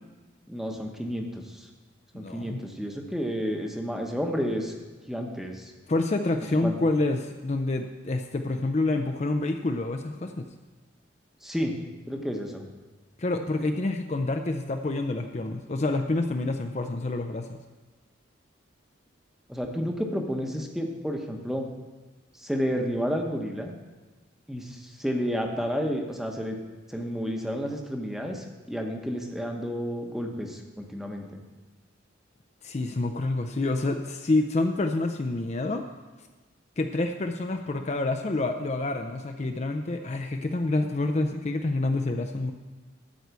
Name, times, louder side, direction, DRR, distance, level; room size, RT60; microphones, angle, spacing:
voice 1, 0.5-1.7 2.1-4.7 5.1-5.7 6.6-6.7 11.4-11.7 12.1-12.6 19.5-21.7 22.4-23.7 24.5-26.6 26.9-31.3, equal, ahead, 2 dB, 0.9 m, -31 dB
voice 2, 2.1-2.6 5.9-10.5 13.2-17.6 32.6-35.8 36.8-42.5, left 2 dB, 35° left, 5 dB, 0.5 m, -28 dB
12.5 x 4.7 x 8.1 m, 1.2 s
head